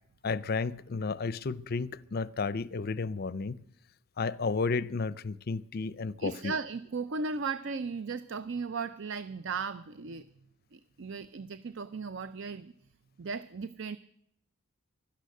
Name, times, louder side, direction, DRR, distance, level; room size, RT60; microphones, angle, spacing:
voice 1, 0.2-3.6 4.2-6.5, left 4 dB, 45° left, 0.5 m, -32 dB
voice 2, 6.2-10.3 10.7-12.7 13.2-14.0, right 4 dB, 55° right, 0.5 m, -36 dB
16.5 x 12.0 x 6.5 m
head